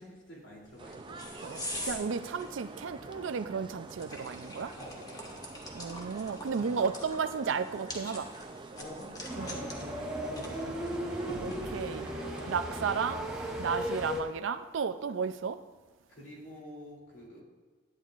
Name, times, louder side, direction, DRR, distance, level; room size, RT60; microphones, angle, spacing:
voice 1, 0.0-1.2 4.8-6.0 6.5-6.8 8.7-11.1 12.4-12.6 16.1-17.4, left 1 dB, 75° left, -4 dB, 3.0 m, -49 dB
sound 1, 0.6-12.1, left 1 dB, 20° left, 1.0 m, -45 dB
sound 2, 0.8-13.1, right 3 dB, 25° right, 0.5 m, -46 dB
voice 2, 1.4-4.7 5.7-8.3 9.4-9.6 11.4-12.1 12.5-13.3 13.6-15.6, right 6 dB, 85° right, 10 dB, 0.4 m, -33 dB
sound 3, 9.2-14.2, equal, 5° right, 1.1 m, -36 dB
11.0 x 9.0 x 2.5 m, 1.3 s
head